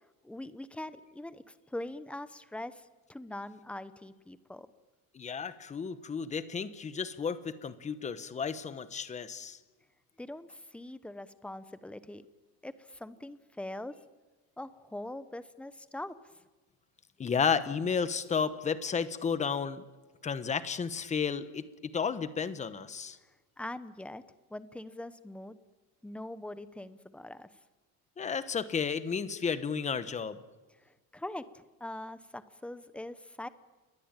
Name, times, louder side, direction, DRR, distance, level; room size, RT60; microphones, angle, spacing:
voice 1, 0.2-4.7 10.2-12.3 12.6-13.9 14.6-16.2 23.6-24.2 24.5-25.6 26.0-27.5 30.8-33.5, left 1 dB, 5° left, 13 dB, 0.8 m, -42 dB
voice 2, 5.1-9.6 17.2-19.8 20.2-21.6 21.9-23.2 28.2-30.4, left 6 dB, 20° left, 13 dB, 1.2 m, -32 dB
29.5 x 22.0 x 9.0 m, 1.3 s
cardioid pair, 170°, 35 cm